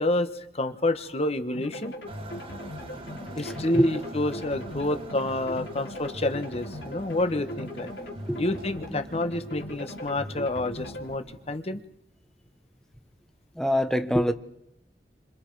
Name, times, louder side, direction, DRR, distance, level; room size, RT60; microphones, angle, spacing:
voice 1, 0.0-2.0 3.3-7.9 8.3-11.8, left 1 dB, 35° left, 1.3 m, -28 dB
sound 1, 1.5-11.1, left 1 dB, 85° left, 3.8 m, -39 dB
sound 2, 2.1-11.6, right 1 dB, 35° right, 1.6 m, -45 dB
voice 2, 3.4-3.9 8.3-8.4 8.9-9.0 13.6-14.3, equal, 5° left, 1.1 m, -25 dB
29.0 x 26.5 x 4.8 m
head